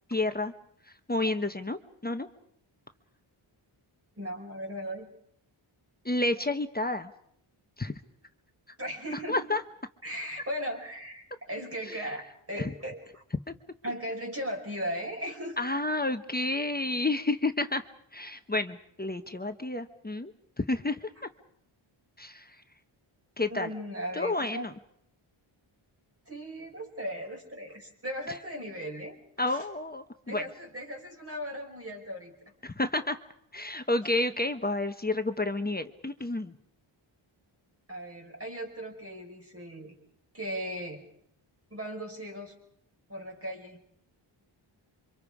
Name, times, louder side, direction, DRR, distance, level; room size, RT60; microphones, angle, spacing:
voice 1, 0.1-0.5 1.1-2.3 6.0-7.1 7.8-7.9 9.3-9.6 11.9-12.0 12.6-12.7 15.6-17.8 18.1-21.3 22.2-22.6 23.4-23.7 24.1-24.7 28.3-28.4 29.4-30.4 32.6-33.2 33.5-36.5, left 2 dB, 20° left, 7 dB, 1.0 m, -30 dB
voice 2, 4.2-5.1 8.8-9.4 10.0-13.2 13.8-15.6 23.5-24.7 26.3-29.1 29.5-29.7 30.3-32.3 37.9-39.9 40.3-41.0 41.7-42.5 43.1-43.9, equal, 30° right, 2 dB, 5.2 m, -37 dB
28.5 x 25.0 x 4.9 m, 0.68 s
wide cardioid pair, 115°, 49 cm